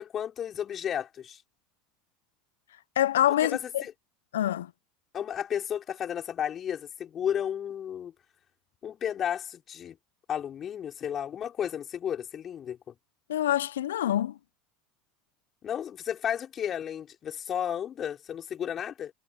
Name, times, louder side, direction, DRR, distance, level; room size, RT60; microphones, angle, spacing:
voice 1, 0.0-1.4 3.4-3.9 5.1-8.1 8.8-10.0 10.3-12.9 15.6-19.1, left 9 dB, 40° left, 4.6 m, -33 dB
voice 2, 3.0-3.8 4.3-4.7 13.3-14.3, left 12 dB, 75° left, 0.8 m, -26 dB
hypercardioid pair, 75°, 0 cm